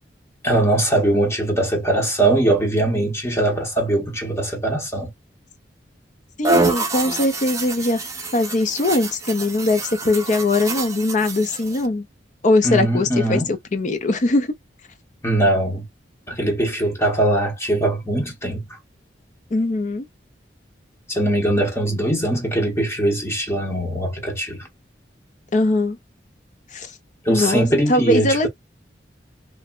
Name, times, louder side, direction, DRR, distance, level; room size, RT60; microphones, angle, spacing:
voice 1, 0.4-5.1 12.6-13.6 15.2-15.8 16.3-18.8 21.1-24.7 27.2-28.5, right 1 dB, 15° left, 0.8 m, -21 dB
voice 2, 6.4-8.0 8.3-12.0 12.4-14.6 19.5-20.1 25.5-26.0 26.7-26.9 27.3-28.5, left 2 dB, 45° left, 0.6 m, -21 dB
sound 1, 6.4-11.9, right 2 dB, 20° right, 0.6 m, -26 dB
3.2 x 2.1 x 2.3 m
head